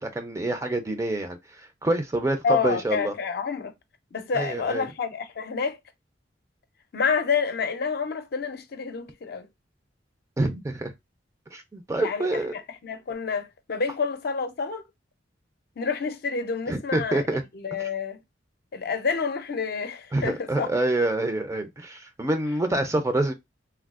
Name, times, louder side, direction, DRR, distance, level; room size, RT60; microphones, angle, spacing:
voice 1, 0.0-1.4 1.8-3.1 4.3-4.9 10.4-10.9 11.5-12.5 16.7-17.4 17.8-17.9 20.1-23.3, right 2 dB, 15° right, 0.4 m, -26 dB
voice 2, 2.4-3.7 4.1-5.8 6.9-9.5 12.0-14.8 15.8-18.2 18.7-20.7, left 5 dB, 55° left, 0.5 m, -28 dB
3.4 x 2.3 x 2.3 m
head